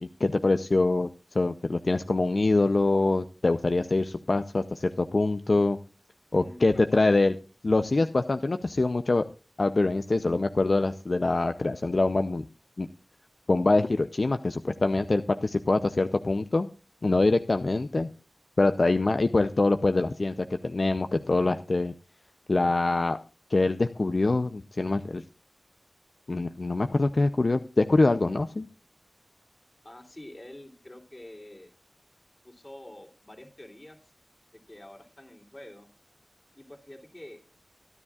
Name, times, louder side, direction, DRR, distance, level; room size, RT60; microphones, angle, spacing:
voice 1, 0.0-5.8 6.3-7.3 7.6-9.2 9.6-12.4 12.8-12.9 13.5-16.7 17.0-18.1 18.6-21.9 22.5-23.2 23.5-25.2 26.3-28.7, left 2 dB, 65° left, 9 dB, 0.6 m, -24 dB
voice 2, 6.3-6.8 29.8-31.7 32.4-34.0 34.5-35.9 36.5-37.4, left 1 dB, 35° left, 3 dB, 3.1 m, -47 dB
23.5 x 9.9 x 2.4 m, 0.33 s
wide cardioid pair, 55°, 0 cm